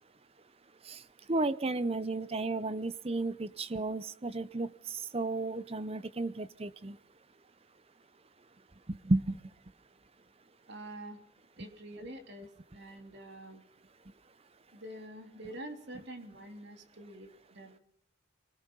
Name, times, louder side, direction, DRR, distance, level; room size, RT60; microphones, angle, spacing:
voice 1, 1.3-4.7 5.1-7.0 8.9-9.4, right 2 dB, 30° right, 16 dB, 0.7 m, -33 dB
voice 2, 10.7-11.2 11.6-13.6 14.7-17.8, right 1 dB, 55° right, 5 dB, 3.3 m, -46 dB
25.5 x 19.0 x 5.6 m, 0.74 s
head